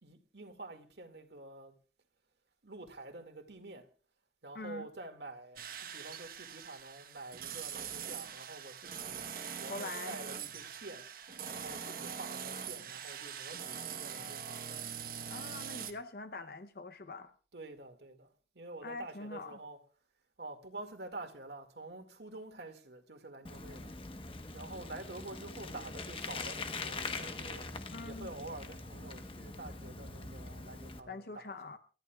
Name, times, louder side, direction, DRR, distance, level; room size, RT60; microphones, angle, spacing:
voice 1, 0.0-1.7 2.6-3.9 4.4-9.2 9.6-11.1 11.5-14.9 17.5-18.3 18.5-19.8 20.4-23.9 24.5-27.7 28.0-31.6, right 2 dB, 70° right, 2.1 m, -48 dB
voice 2, 4.5-4.9 9.7-10.2 15.3-17.3 18.8-19.6 27.9-28.3 31.1-31.8, left 3 dB, 55° left, 0.7 m, -44 dB
sound 1, 5.6-15.9, right 7 dB, 55° right, 1.1 m, -43 dB
Bicycle, 23.4-31.0, left 3 dB, 30° left, 1.0 m, -43 dB
28.5 x 13.5 x 2.3 m
head